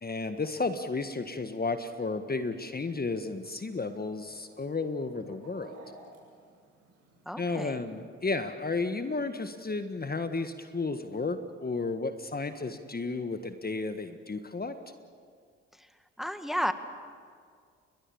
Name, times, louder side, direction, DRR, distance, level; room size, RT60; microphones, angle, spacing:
voice 1, 0.0-5.7 7.4-14.8, left 3 dB, 30° left, 8 dB, 1.6 m, -33 dB
Chicken rooster, 2.4-7.5, right 2 dB, 70° right, 7.4 m, -56 dB
voice 2, 7.3-7.8 15.7-15.9 16.2-16.7, equal, ahead, 9 dB, 1.9 m, -32 dB
29.5 x 23.0 x 7.1 m, 2.1 s
hypercardioid pair, 45°, 32 cm